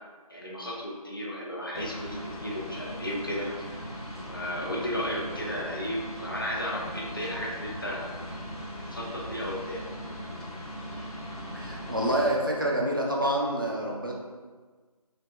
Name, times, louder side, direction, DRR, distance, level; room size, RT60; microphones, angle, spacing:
voice 1, 0.3-3.6 4.3-8.1 8.8-9.8, equal, 35° left, -2 dB, 0.5 m, -34 dB
sound 1, 1.7-12.3, equal, 75° left, 1.1 m, -39 dB
voice 2, 11.5-14.1, right 1 dB, 35° right, -3 dB, 0.4 m, -27 dB
5.8 x 2.6 x 2.3 m, 1.4 s
figure-of-eight pair, 165°, 20 cm